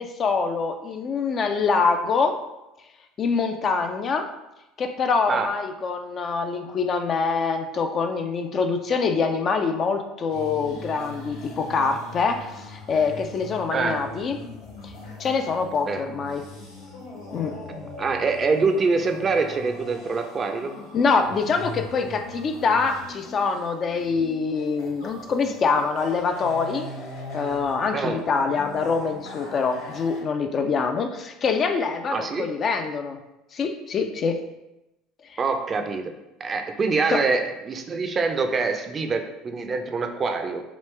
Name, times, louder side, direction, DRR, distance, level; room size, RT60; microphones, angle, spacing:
voice 1, 0.0-2.4 3.2-4.2 4.8-14.4 14.8-14.9 15.2-16.4 17.3-17.5 20.9-26.9 27.3-33.2 33.5-34.4 37.1-37.2, left 5 dB, 40° left, 6 dB, 0.4 m, -25 dB
sound 1, 10.3-30.2, left 2 dB, 80° left, 1.1 m, -40 dB
voice 2, 18.0-20.7 27.9-28.2 32.1-32.5 35.4-36.0 36.4-40.6, right 4 dB, 35° right, 5 dB, 0.4 m, -25 dB
3.1 x 2.9 x 3.2 m, 0.94 s
hypercardioid pair, 75°, 0 cm